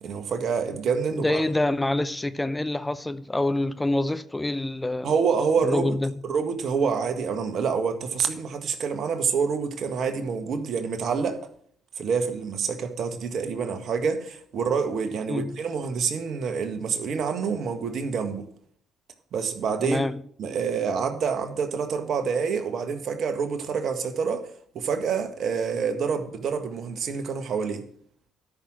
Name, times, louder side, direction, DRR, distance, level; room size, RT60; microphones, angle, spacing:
voice 1, 0.0-1.4 5.0-6.0 6.2-11.4 12.0-18.5 19.3-20.0 20.4-24.5 24.8-27.9, right 6 dB, 55° right, 1.6 m, -27 dB
voice 2, 1.1-5.1 5.6-6.1 15.3-15.5 19.8-20.2, left 2 dB, 15° left, 0.6 m, -26 dB
12.5 x 6.3 x 6.4 m
hypercardioid pair, 50°, 0 cm